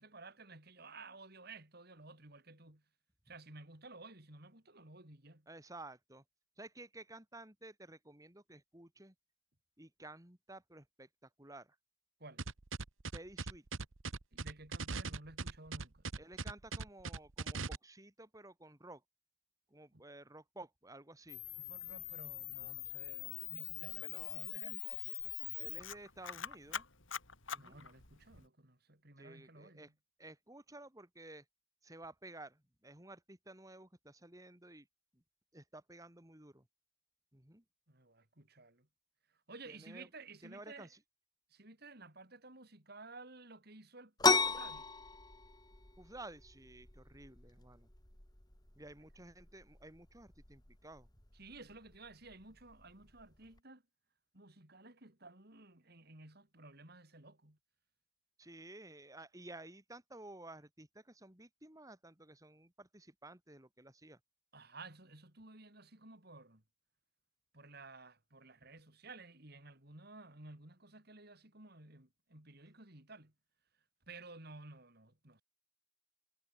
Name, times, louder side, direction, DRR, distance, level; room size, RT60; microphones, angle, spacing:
voice 1, 0.0-2.8 3.3-5.5 12.2-12.5 14.3-16.0 19.9-20.0 21.7-24.8 27.6-29.9 37.9-38.9 39.5-40.9 41.5-44.9 51.3-53.8 54.3-57.6 64.5-66.6 67.5-73.3 74.1-75.4, right 3 dB, 50° right, 3.8 m, -54 dB
voice 2, 5.5-6.2 6.6-9.1 9.8-11.8 13.1-13.6 16.2-19.0 19.7-21.4 24.0-24.4 24.8-25.0 25.6-26.8 27.5-27.8 29.2-29.9 30.2-31.4 31.8-34.9 35.5-36.6 37.3-37.6 39.7-40.1 40.4-41.0 46.0-47.9 48.8-51.1 58.4-64.2, right 2 dB, 15° right, 3.0 m, -53 dB
sound 1, 12.4-17.8, right 4 dB, 80° right, 1.3 m, -40 dB
Camera, 21.3-28.4, left 12 dB, 75° left, 4.8 m, -43 dB
sound 2, 44.2-53.6, left 4 dB, 20° left, 2.2 m, -38 dB
head